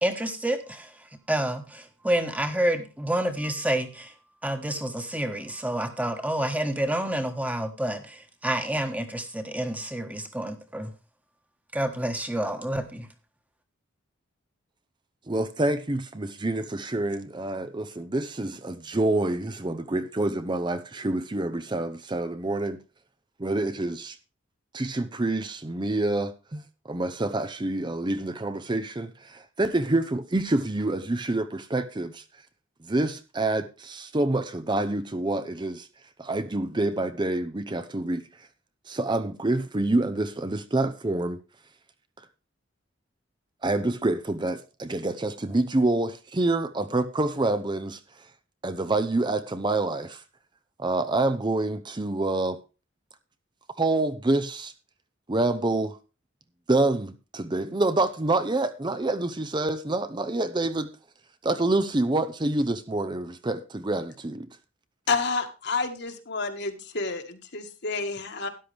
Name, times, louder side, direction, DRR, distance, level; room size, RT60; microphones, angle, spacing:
voice 1, 0.0-4.1 4.4-10.9 11.7-13.1, right 1 dB, 10° right, 1.3 m, -29 dB
voice 2, 15.3-22.8 23.4-24.2 24.7-32.2 32.9-35.9 36.2-38.2 38.9-41.4 43.6-48.0 48.6-50.2 50.8-52.6 53.8-54.7 55.3-56.0 56.7-60.9 61.4-64.5, right 2 dB, 25° right, 0.6 m, -27 dB
voice 3, 65.1-68.5, left 4 dB, 55° left, 1.7 m, -29 dB
13.0 x 10.5 x 3.4 m
head